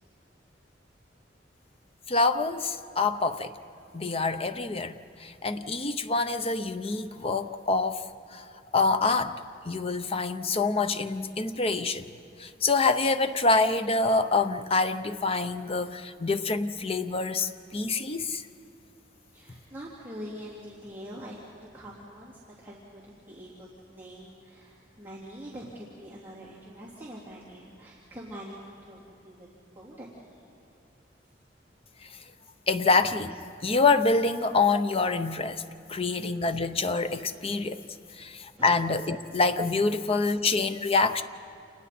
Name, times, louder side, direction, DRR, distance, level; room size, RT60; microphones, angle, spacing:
voice 1, 2.1-3.5 3.9-8.0 8.3-8.5 8.7-9.4 9.6-12.1 12.4-18.5 32.0-32.2 32.7-33.4 33.6-35.6 35.9-37.8 38.2-41.2, left 3 dB, 35° left, 10 dB, 0.8 m, -26 dB
voice 2, 19.3-30.3 38.5-38.7, equal, 10° right, -9 dB, 3.1 m, -44 dB
30.0 x 28.5 x 4.3 m, 2.5 s
head